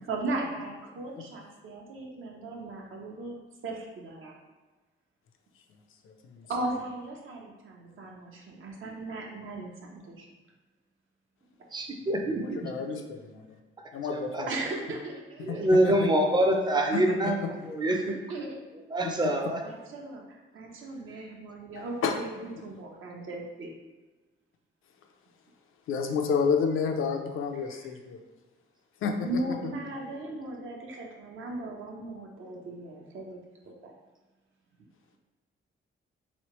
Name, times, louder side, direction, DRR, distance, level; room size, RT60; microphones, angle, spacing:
voice 1, 0.1-3.4 3.6-4.4 6.5-10.3 14.5-15.7 17.9-18.0 18.3-18.5 19.6-23.7 27.5-27.9 29.2-33.4 33.7-33.9, right 2 dB, 70° right, 0 dB, 0.8 m, -37 dB
voice 2, 6.0-6.5 12.4-13.6 13.9-14.5 15.5-16.1 16.9-17.7 19.0-19.3 21.7-22.2 25.9-28.2 29.0-29.3, left 5 dB, 75° left, 4 dB, 0.5 m, -30 dB
voice 3, 11.7-12.7 14.1-14.4 15.4-18.2 18.9-19.6, right 1 dB, 20° right, 3 dB, 0.5 m, -25 dB
3.7 x 3.1 x 3.0 m, 1.2 s
cardioid pair, 120°, 21 cm